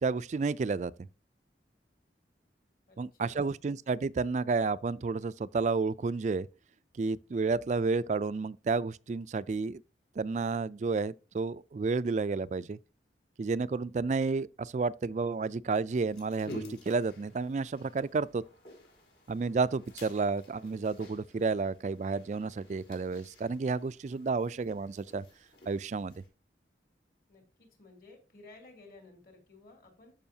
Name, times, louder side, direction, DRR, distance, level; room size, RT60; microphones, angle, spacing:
voice 1, 0.0-0.9 3.0-6.5 7.0-9.8 10.2-12.8 13.4-18.4 19.3-25.2 25.7-26.1, right 4 dB, 40° right, 0.3 m, -31 dB
voice 2, 2.9-3.6 27.3-30.1, left 3 dB, 55° left, 3.2 m, -55 dB
sound 1, 15.9-26.3, left 1 dB, 75° left, 4.0 m, -51 dB
14.0 x 5.5 x 2.8 m
head